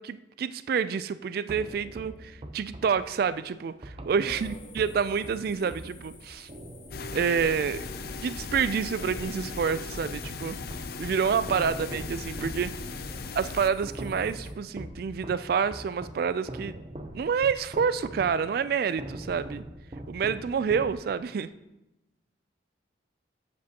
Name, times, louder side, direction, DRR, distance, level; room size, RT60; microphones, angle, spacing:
voice 1, 0.0-6.5 7.1-7.8 8.2-10.6 11.0-12.7 13.3-16.8 17.1-19.6 20.1-21.5, right 6 dB, 55° right, 14 dB, 0.3 m, -28 dB
sound 1, 1.5-8.6 9.0-11.0 11.5-21.4, right 1 dB, 30° right, 0.7 m, -43 dB
voice 2, 4.2-4.8 5.5-5.8 12.9-13.4, left 1 dB, 35° left, 5 dB, 0.9 m, -51 dB
sound 2, 4.3-14.5, left 4 dB, 80° left, 1.5 m, -52 dB
sound 3, 6.9-13.7, left 4 dB, 55° left, 0.5 m, -38 dB
12.0 x 7.4 x 2.9 m, 0.96 s
head